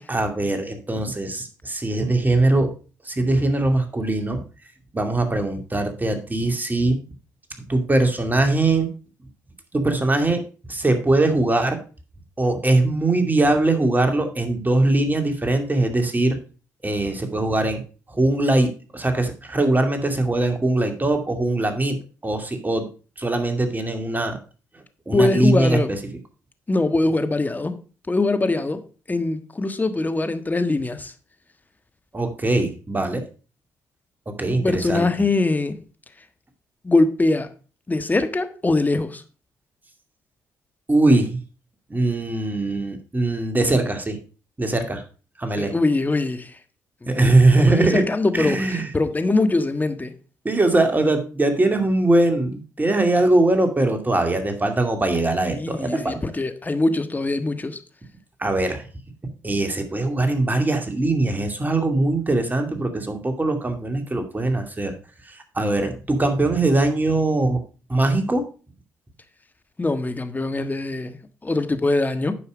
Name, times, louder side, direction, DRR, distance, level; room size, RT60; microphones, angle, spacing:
voice 1, 0.1-2.7 3.0-4.4 4.9-7.0 7.7-8.9 9.7-10.4 10.7-11.8 12.4-16.4 16.8-17.8 18.1-22.9 23.2-24.4 25.1-26.0 32.1-33.2 34.3-35.1 40.9-41.4 41.9-44.2 44.6-45.0 45.4-45.7 47.1-48.0 48.3-48.9 50.4-56.2 58.4-58.8 59.4-65.0 65.3-67.6 67.9-68.5, right 2 dB, 25° right, 2.4 m, -21 dB
voice 2, 25.1-25.9 26.7-27.7 28.1-28.8 29.1-31.1 34.5-35.8 36.8-37.5 37.9-39.2 45.6-46.5 47.0-47.1 47.6-50.1 55.5-57.8 69.8-72.3, left 2 dB, 20° left, 1.4 m, -22 dB
9.6 x 5.5 x 5.1 m
hypercardioid pair, 50°, 8 cm